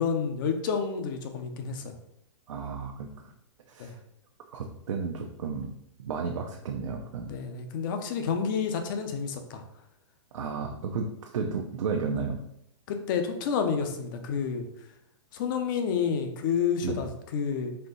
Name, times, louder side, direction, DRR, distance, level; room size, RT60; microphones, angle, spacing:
voice 1, 0.0-1.9 3.8-3.9 7.3-9.6 12.9-14.7 15.3-17.8, left 6 dB, 40° left, 6 dB, 0.6 m, -29 dB
voice 2, 2.5-3.3 3.7-4.0 4.5-5.7 6.0-7.3 10.3-12.4 16.8-17.1, right 5 dB, 85° right, 1 dB, 0.6 m, -33 dB
4.4 x 2.6 x 3.8 m, 0.78 s
hypercardioid pair, 160°, 16 cm